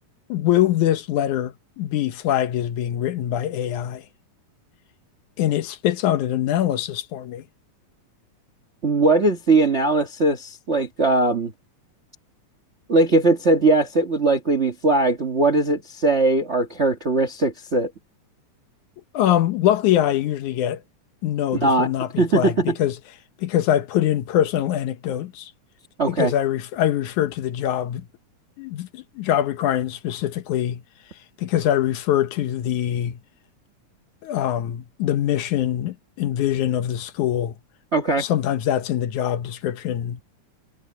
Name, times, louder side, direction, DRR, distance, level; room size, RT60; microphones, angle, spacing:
voice 1, 0.3-4.1 5.4-7.4 19.1-20.8 21.2-23.0 23.4-25.5 26.1-28.1 28.6-30.8 31.4-33.2 34.2-37.6 38.2-40.2, left 11 dB, 75° left, 2.4 m, -23 dB
voice 2, 8.8-11.5 12.9-17.9 21.6-21.9 22.2-22.7 26.0-26.3 37.9-38.2, right 2 dB, 45° right, 0.9 m, -20 dB
omnidirectional pair, 3.5 m